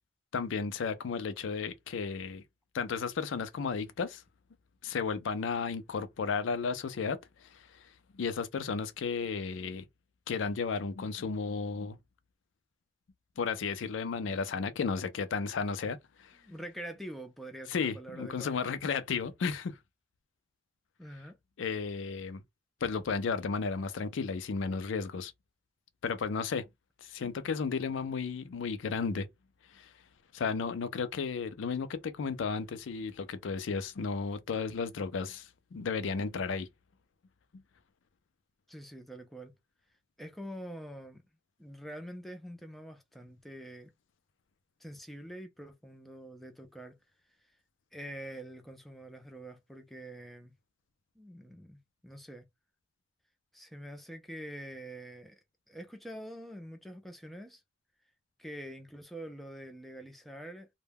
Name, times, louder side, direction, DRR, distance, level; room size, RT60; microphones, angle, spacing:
voice 1, 0.3-2.4 2.7-4.2 4.8-9.8 10.3-12.0 13.4-16.4 17.7-19.8 21.6-22.4 22.8-25.3 26.0-26.6 27.0-29.3 29.7-29.9 30.3-36.7, left 5 dB, 85° left, 0.4 m, -33 dB
voice 2, 16.4-18.6 21.0-21.4 38.7-39.5 40.2-41.2 41.6-43.9 44.8-47.0 47.9-50.5 51.2-52.5 53.5-57.6 58.4-60.7, right 1 dB, ahead, 0.4 m, -45 dB
2.2 x 2.1 x 3.3 m
head